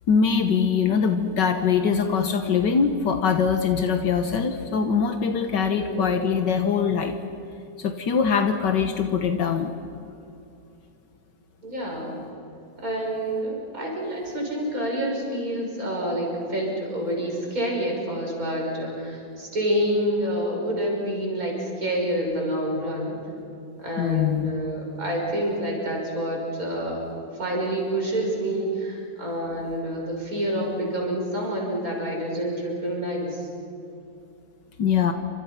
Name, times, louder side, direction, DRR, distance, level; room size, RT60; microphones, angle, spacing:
voice 1, 0.1-7.2 7.8-9.7 24.0-24.5 34.8-35.1, left 6 dB, 75° left, 6 dB, 1.8 m, -22 dB
voice 2, 5.8-6.2 11.6-12.2 12.8-23.2 23.8-33.5, right 1 dB, 50° right, -1 dB, 6.7 m, -28 dB
29.0 x 27.0 x 5.8 m, 2.6 s
omnidirectional pair, 1.9 m